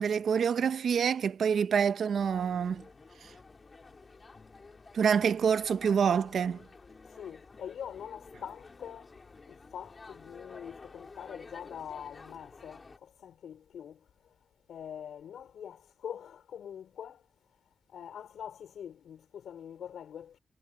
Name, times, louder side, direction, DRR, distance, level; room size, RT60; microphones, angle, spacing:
voice 1, 0.0-2.8 3.2-3.3 4.9-6.6, right 7 dB, 70° right, 1.0 m, -27 dB
sound 1, 2.1-13.0, left 4 dB, 35° left, 6.4 m, -52 dB
voice 2, 7.0-9.2 9.5-14.3 14.7-17.2 17.9-20.4, left 8 dB, 80° left, 4.1 m, -44 dB
cardioid pair, 100°, 0 cm